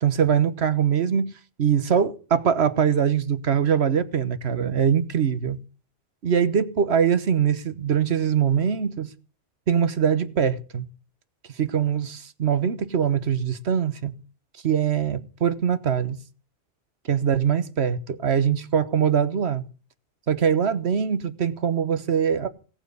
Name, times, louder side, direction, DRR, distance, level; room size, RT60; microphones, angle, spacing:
voice 1, 0.0-5.6 6.2-9.1 9.7-10.9 11.5-14.2 14.6-16.2 17.1-19.6 20.3-22.5, right 8 dB, 75° right, 1.4 m, -23 dB
17.5 x 8.8 x 6.9 m
omnidirectional pair, 1.1 m